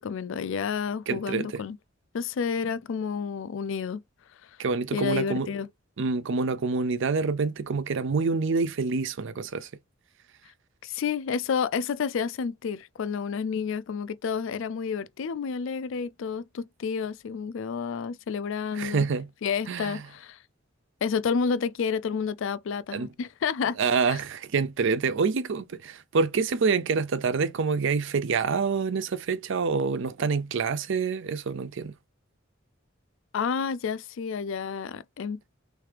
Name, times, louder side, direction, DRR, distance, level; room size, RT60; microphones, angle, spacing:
voice 1, 0.0-1.8 2.1-4.0 4.9-5.7 10.8-19.1 19.4-20.4 21.0-23.8 24.1-24.2 33.3-35.4, left 6 dB, 70° left, 0.4 m, -30 dB
voice 2, 1.1-1.6 4.6-5.5 6.0-9.7 18.7-19.3 19.7-20.0 22.9-23.1 23.8-31.9, right 4 dB, 65° right, 0.5 m, -27 dB
3.3 x 3.2 x 3.3 m
head